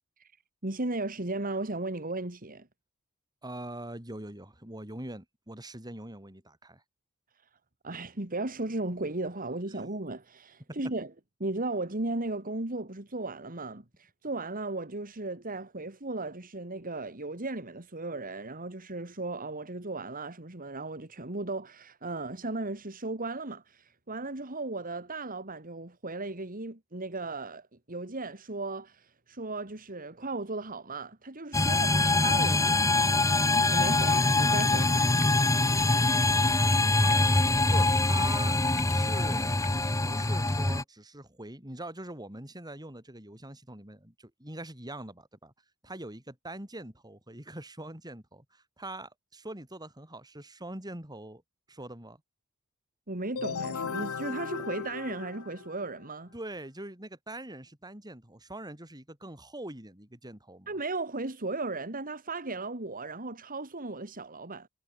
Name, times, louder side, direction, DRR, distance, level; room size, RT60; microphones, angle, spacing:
voice 1, 0.6-2.7 7.8-11.1 11.4-31.9 32.2-32.8 33.7-35.1 53.1-56.3 60.7-64.7, right 2 dB, 40° right, 2.8 m, -36 dB
voice 2, 3.4-6.8 10.7-10.8 31.6-32.1 33.2-33.5 36.9-38.6 38.9-39.5 40.0-45.5 45.8-51.4 51.7-52.2 56.3-60.7, right 1 dB, 20° right, 5.6 m, -43 dB
sound 1, 31.5-40.8, left 2 dB, 15° left, 1.0 m, -24 dB
sound 2, 33.5-40.8, left 5 dB, 35° left, 6.8 m, -51 dB
sound 3, 53.3-56.0, left 5 dB, 80° left, 0.8 m, -36 dB
head